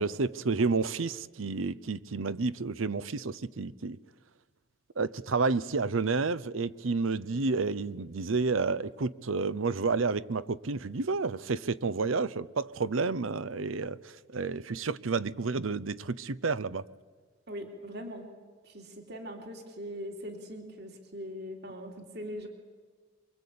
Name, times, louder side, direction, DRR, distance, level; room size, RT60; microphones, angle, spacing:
voice 1, 0.0-4.0 5.0-16.8, right 4 dB, 85° right, 0.7 m, -30 dB
voice 2, 17.5-18.3 18.7-22.5, equal, 55° right, 3.0 m, -41 dB
24.5 x 24.0 x 8.6 m
head